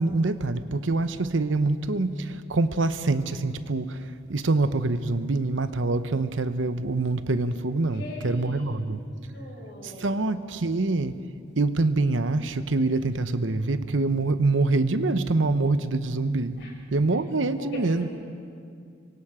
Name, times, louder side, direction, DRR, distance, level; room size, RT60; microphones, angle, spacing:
voice 1, 0.0-4.0 4.3-9.0 9.8-11.2 11.6-16.6 16.9-18.1, right 2 dB, 80° right, 11 dB, 0.9 m, -25 dB
voice 2, 7.9-8.8 9.3-10.2 16.6-16.7 17.6-18.1, left 1 dB, 65° left, -4 dB, 7.6 m, -40 dB
25.0 x 23.5 x 5.0 m, 2.4 s
head